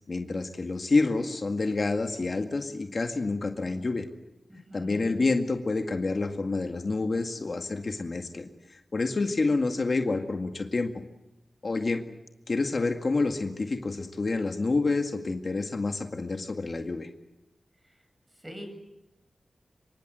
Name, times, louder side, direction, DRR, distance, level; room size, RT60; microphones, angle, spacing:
voice 1, 0.1-4.1 4.7-10.9 11.6-12.0 12.5-17.1, left 3 dB, 50° left, 5 dB, 2.0 m, -28 dB
voice 2, 4.5-5.0 18.4-18.7, equal, 15° right, 6 dB, 7.7 m, -43 dB
26.5 x 24.5 x 7.7 m, 0.92 s
wide cardioid pair, 95°, 0 cm